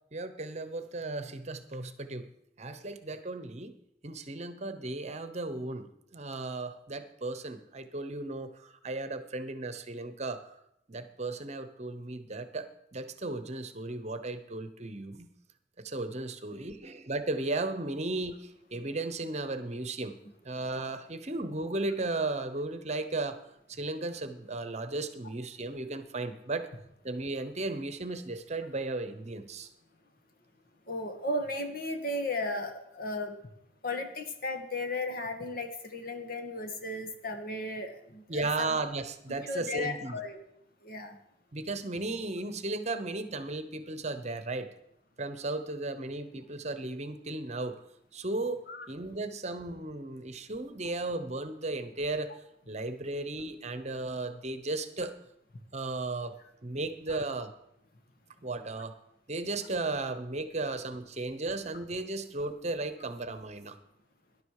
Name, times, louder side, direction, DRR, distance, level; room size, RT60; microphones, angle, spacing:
voice 1, 0.1-2.3 2.6-3.8 4.0-10.5 10.9-15.3 15.8-20.2 20.4-23.4 23.7-26.7 27.0-29.7 38.3-40.2 41.5-44.7 45.2-47.8 48.1-52.3 52.7-55.1 55.7-56.4 56.6-57.5 58.4-59.0 59.3-63.8, right 2 dB, 40° right, 10 dB, 1.0 m, -35 dB
voice 2, 30.9-33.5 33.8-38.8 39.4-40.4 40.8-41.2 48.7-48.9, left 2 dB, 50° left, 6 dB, 1.9 m, -35 dB
18.5 x 11.0 x 4.9 m, 0.77 s
head